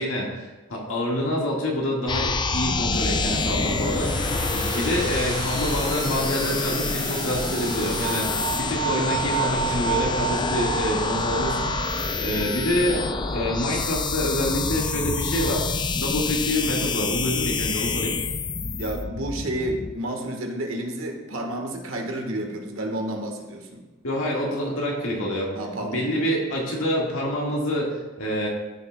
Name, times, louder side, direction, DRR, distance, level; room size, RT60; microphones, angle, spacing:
voice 1, 0.0-13.0 13.3-15.6 15.9-18.2 24.0-25.5 25.8-28.5, equal, 80° left, -2 dB, 1.7 m, -27 dB
sound 1, 2.1-19.9, left 4 dB, 20° left, 0.4 m, -27 dB
sound 2, 2.9-8.2, right 3 dB, 20° right, 1.0 m, -34 dB
sound 3, 8.0-13.1, right 8 dB, 50° right, 1.3 m, -31 dB
voice 2, 18.8-23.8 25.5-26.1, right 1 dB, 80° right, 2 dB, 1.4 m, -30 dB
14.0 x 6.0 x 2.2 m, 1.2 s
head